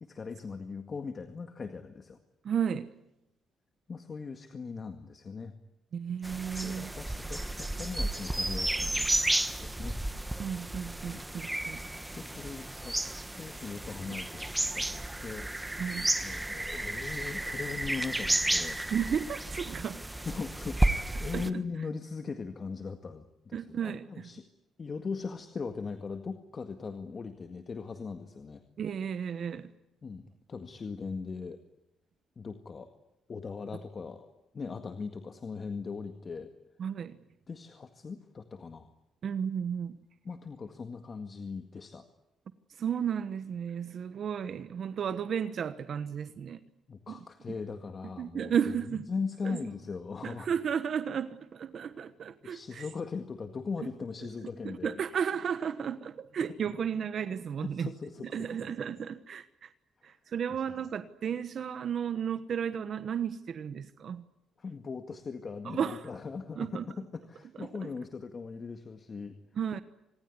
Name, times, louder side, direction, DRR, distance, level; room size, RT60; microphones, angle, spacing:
voice 1, 0.0-2.2 3.9-5.5 6.6-9.1 9.6-10.0 11.1-11.2 12.1-13.0 13.3-15.5 16.2-18.8 20.2-24.4 24.8-28.6 30.0-31.6 32.4-32.9 33.3-36.5 37.5-38.9 40.2-42.0 46.9-48.5 48.9-50.5 52.4-55.0 57.6-58.7 64.6-69.4, left 5 dB, 40° left, 7 dB, 1.9 m, -39 dB
voice 2, 2.4-2.9 5.9-6.9 10.4-11.8 15.8-16.1 18.9-20.0 21.3-21.4 23.5-24.3 28.8-29.7 36.8-37.2 39.2-40.0 42.8-46.6 47.1-47.2 47.5-47.6 48.2-49.0 49.4-49.6 50.2-52.9 54.6-57.9 58.3-59.7 60.0-64.2 65.6-66.0 66.6-66.9 67.6-67.9 69.6-69.8, right 7 dB, 55° right, 12 dB, 1.2 m, -33 dB
sound 1, 6.2-21.5, right 1 dB, 10° right, 1.3 m, -32 dB
26.5 x 20.5 x 9.6 m, 0.90 s
cardioid pair, 90°, 0 cm